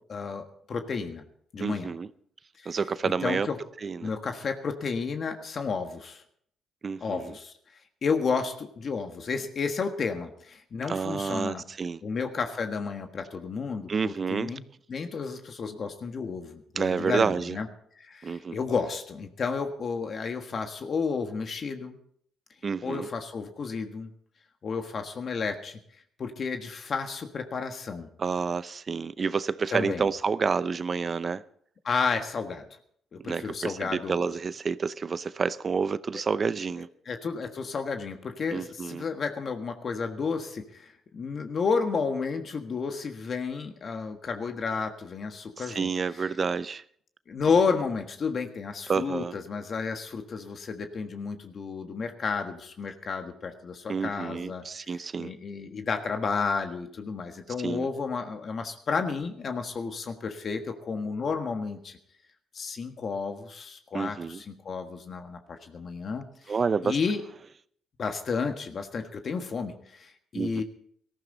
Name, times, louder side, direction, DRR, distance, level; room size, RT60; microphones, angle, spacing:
voice 1, 0.1-1.2 1.5-1.9 2.6-2.8 3.0-3.6 4.0-6.2 7.0-7.5 8.0-11.6 12.0-14.6 14.9-17.7 18.0-22.0 22.8-24.1 24.6-25.8 26.2-28.1 29.7-30.1 31.8-32.7 33.1-34.1 37.0-45.9 47.3-54.6 55.2-62.0 62.5-66.5 66.8-67.2 68.0-70.6, left 5 dB, 50° left, 1.5 m, -31 dB
voice 2, 1.6-2.1 2.7-3.5 3.8-4.1 6.8-7.3 10.9-12.0 13.9-14.6 16.8-17.6 18.2-18.6 22.6-23.1 28.2-31.4 33.2-36.9 38.5-39.0 45.6-46.8 48.9-49.3 53.9-55.3 57.6-57.9 63.9-64.4 66.5-67.0 70.3-70.6, right 5 dB, 40° right, 0.6 m, -29 dB
18.5 x 14.5 x 4.0 m
cardioid pair, 90°, 0 cm